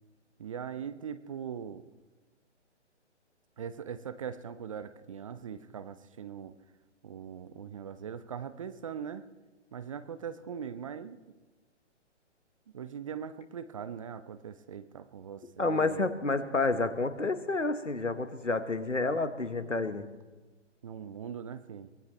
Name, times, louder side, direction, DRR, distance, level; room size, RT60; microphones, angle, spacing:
voice 1, 0.4-1.8 3.6-6.5 7.0-9.3 9.7-11.2 12.7-16.1 20.8-21.9, right 7 dB, 30° right, 13 dB, 0.5 m, -41 dB
voice 2, 15.6-20.0, left 3 dB, 85° left, 11 dB, 1.5 m, -29 dB
23.5 x 18.5 x 3.2 m, 1.2 s
figure-of-eight pair, 130°, 36 cm